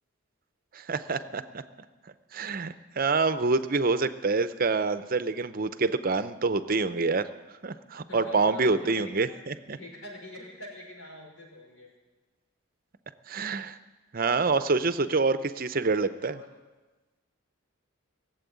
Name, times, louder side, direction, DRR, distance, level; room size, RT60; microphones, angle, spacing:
voice 1, 0.7-1.6 2.3-7.3 7.6-9.8 13.3-13.8 14.1-16.4, right 3 dB, 45° right, 12 dB, 0.6 m, -27 dB
voice 2, 8.1-11.9 16.2-16.5, left 1 dB, 80° left, -1 dB, 5.4 m, -45 dB
19.0 x 7.8 x 9.3 m, 1.2 s
head